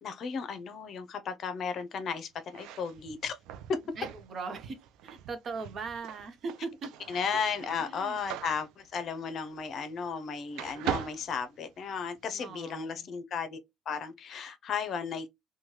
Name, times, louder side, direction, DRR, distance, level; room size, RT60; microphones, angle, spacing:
voice 1, 0.0-3.4 3.7-3.8 7.1-13.6 13.9-15.3, left 6 dB, 60° left, 0.5 m, -34 dB
sound 1, 2.4-10.2 10.5-12.2, right 10 dB, 85° right, 0.3 m, -41 dB
voice 2, 4.0-4.8 5.0-6.9 7.8-8.2 12.3-13.1, right 4 dB, 55° right, 0.7 m, -39 dB
3.1 x 2.2 x 2.9 m
cardioid pair, 90°, 0 cm